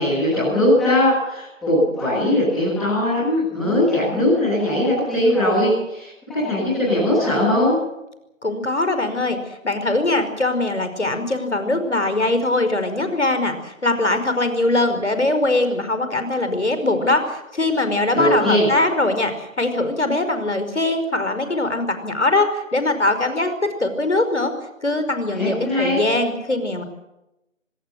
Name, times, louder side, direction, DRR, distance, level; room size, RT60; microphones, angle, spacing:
voice 1, 0.0-7.7 18.1-18.6 25.3-25.9, left 1 dB, ahead, -17 dB, 2.7 m, -20 dB
voice 2, 8.4-9.4 9.6-24.5 24.8-26.8, left 2 dB, 60° left, 8 dB, 5.2 m, -21 dB
26.0 x 20.0 x 6.5 m, 0.89 s
figure-of-eight pair, 180°, 40 cm